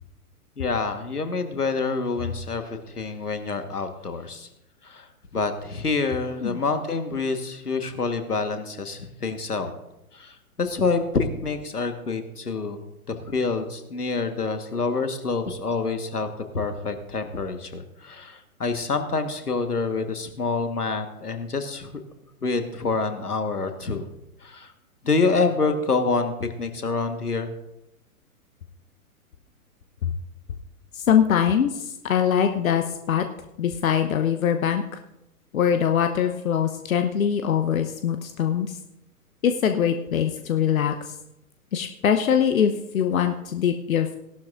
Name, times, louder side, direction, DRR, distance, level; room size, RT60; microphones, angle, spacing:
voice 1, 0.6-4.5 4.8-5.1 5.3-9.7 10.1-21.9 22.4-24.1 24.4-24.7 25.0-27.5, left 4 dB, 85° left, 8 dB, 1.4 m, -27 dB
voice 2, 30.9-33.3 33.6-34.8 35.5-38.8 39.4-41.1 41.7-44.2, left 8 dB, 65° left, 7 dB, 0.8 m, -23 dB
17.0 x 12.0 x 2.5 m, 0.88 s
figure-of-eight pair, 120°, 45 cm